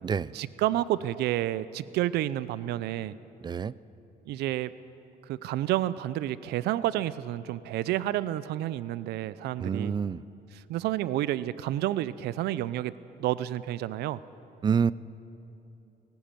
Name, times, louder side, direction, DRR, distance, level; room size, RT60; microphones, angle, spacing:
voice 1, 0.3-3.2 4.3-4.7 5.3-10.0 10.5-12.9 13.2-14.2, right 14 dB, 75° right, 17 dB, 0.6 m, -30 dB
voice 2, 9.6-10.2 14.6-14.9, right 6 dB, 25° right, 20 dB, 0.4 m, -27 dB
18.5 x 17.0 x 9.1 m, 2.8 s
cardioid pair, 110°, 17 cm